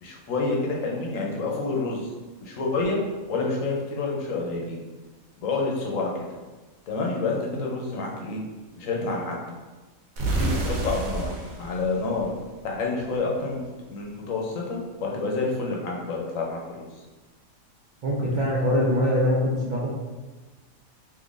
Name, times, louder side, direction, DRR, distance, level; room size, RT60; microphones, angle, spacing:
voice 1, 0.0-2.0 2.4-3.0 3.3-4.8 5.4-6.1 6.9-8.4 8.8-9.4 10.3-11.3 11.6-12.3 12.6-13.6 13.9-16.6, left 3 dB, 75° left, -1 dB, 1.0 m, -28 dB
sound 1, 10.2-13.0, right 2 dB, 90° right, 1.1 m, -30 dB
voice 2, 18.0-19.9, equal, 65° right, -6 dB, 0.4 m, -23 dB
3.7 x 2.8 x 2.4 m, 1.2 s
omnidirectional pair, 1.4 m